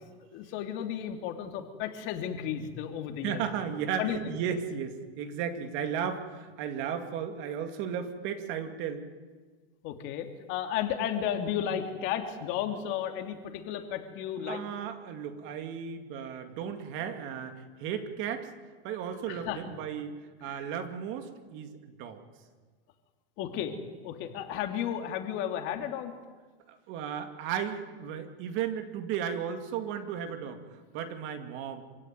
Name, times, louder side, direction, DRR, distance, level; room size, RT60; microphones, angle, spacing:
voice 1, 0.3-3.4 4.0-4.2 9.8-14.6 19.3-19.6 20.4-20.6 23.4-23.7 24.0-26.1, left 9 dB, 40° left, 5 dB, 2.8 m, -33 dB
voice 2, 3.2-9.0 14.4-18.5 18.8-20.1 20.4-22.2 24.2-24.3 26.7-31.8, right 8 dB, 40° right, 7 dB, 2.4 m, -35 dB
26.5 x 16.5 x 9.4 m, 1.4 s
supercardioid pair, 140°, 31 cm